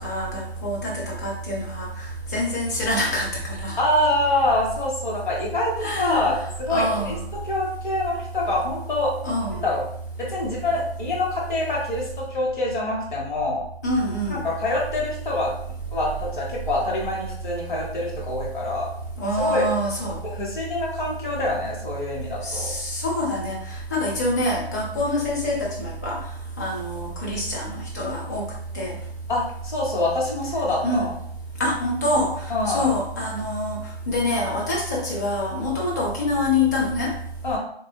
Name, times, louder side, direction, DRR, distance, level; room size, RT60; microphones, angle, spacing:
voice 1, 0.0-2.1 2.3-3.8 5.5-6.3 6.7-7.2 9.2-9.6 13.8-14.4 19.2-20.2 22.4-26.2 26.6-28.4 28.7-28.9 30.8-31.1 31.6-32.3 32.7-33.8 34.1-37.1, left 1 dB, 15° left, -3 dB, 0.5 m, -25 dB
voice 2, 3.8-9.1 9.5-9.8 10.2-13.6 14.3-15.5 15.9-18.9 19.4-19.7 20.2-22.7 29.3-31.1 32.5-33.0 37.4-37.6, left 2 dB, 50° left, -4 dB, 1.4 m, -25 dB
3.9 x 2.6 x 2.7 m, 0.67 s
figure-of-eight pair, 145°, 31 cm